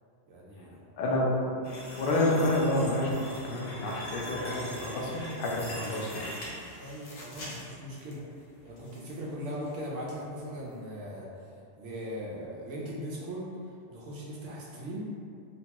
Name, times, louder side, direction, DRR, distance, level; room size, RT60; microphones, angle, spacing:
voice 1, 0.3-0.8 6.8-8.2 8.6-11.3 11.8-13.5 13.9-15.1, equal, 85° right, -5 dB, 0.9 m, -39 dB
voice 2, 1.0-1.3 1.9-6.3, left 1 dB, 60° left, -3 dB, 0.6 m, -29 dB
sound 1, 1.6-8.1 8.6-9.2 9.5-9.7 10.2-10.3, left 1 dB, 80° left, 1.0 m, -42 dB
2.8 x 2.2 x 2.8 m, 2.3 s
omnidirectional pair, 1.2 m